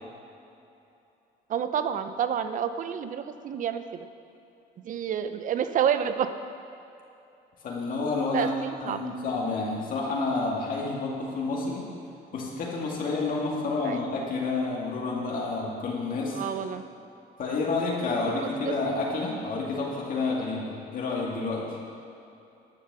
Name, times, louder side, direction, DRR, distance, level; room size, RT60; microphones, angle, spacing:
voice 1, 1.5-4.1 4.8-6.3 8.3-9.1 13.8-14.0 16.3-16.8 18.6-18.7, right 8 dB, 50° right, 10 dB, 0.7 m, -29 dB
voice 2, 7.6-8.5 8.8-11.9 12.3-16.4 17.4-21.6, left 3 dB, 55° left, -3 dB, 2.3 m, -29 dB
11.5 x 6.7 x 6.8 m, 2.8 s
cardioid pair, 110°, 17 cm